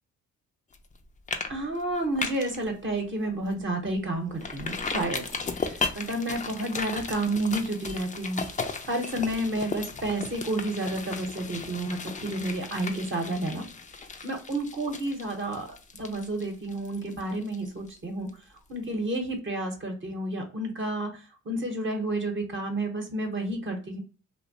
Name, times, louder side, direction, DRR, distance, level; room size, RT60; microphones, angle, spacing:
sound 1, 0.7-1.0 1.3-1.5 1.8-2.6 3.0-3.1 3.5-3.6 4.4-18.0 18.3-18.4, left 4 dB, 25° left, 0.4 m, -35 dB
voice 1, 1.5-5.2 5.6-8.4 8.9-13.6 14.2-15.7 16.0-18.3 18.7-24.0, right 1 dB, 40° right, 3 dB, 0.9 m, -30 dB
2.7 x 2.1 x 2.6 m, 0.37 s
cardioid pair, 80°, 32 cm